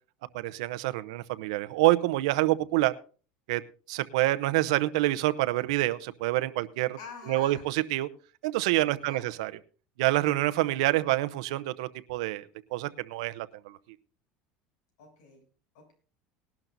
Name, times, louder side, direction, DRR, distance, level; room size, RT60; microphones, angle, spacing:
voice 1, 0.3-2.9 3.5-3.6 3.9-7.0 7.3-8.1 8.4-9.5 10.0-13.8, right 17 dB, 90° right, 14 dB, 0.7 m, -27 dB
voice 2, 7.0-7.7 9.0-9.4 15.0-15.4 15.7-15.9, left 5 dB, 75° left, 2 dB, 7.8 m, -47 dB
19.5 x 12.0 x 2.7 m, 0.39 s
cardioid pair, 165°, 3 cm